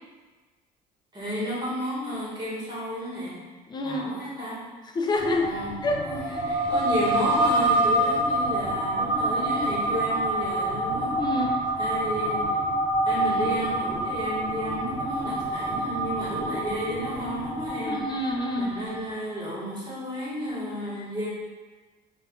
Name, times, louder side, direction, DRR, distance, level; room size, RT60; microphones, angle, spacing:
voice 1, 1.1-3.4 3.8-4.7 5.4-5.7 6.0-11.5 11.8-12.6 13.0-18.0 18.6-21.3, equal, 25° right, -9 dB, 1.3 m, -32 dB
voice 2, 3.7-4.2 4.9-5.5 5.8-6.0 6.3-6.4 6.7-6.9 11.2-11.6 17.9-18.7, left 2 dB, 25° left, 2 dB, 0.4 m, -27 dB
sound 1, 5.2-19.1, right 1 dB, 50° right, 1.0 m, -27 dB
3.3 x 2.4 x 2.2 m, 1.3 s
cardioid pair, 110°, 17 cm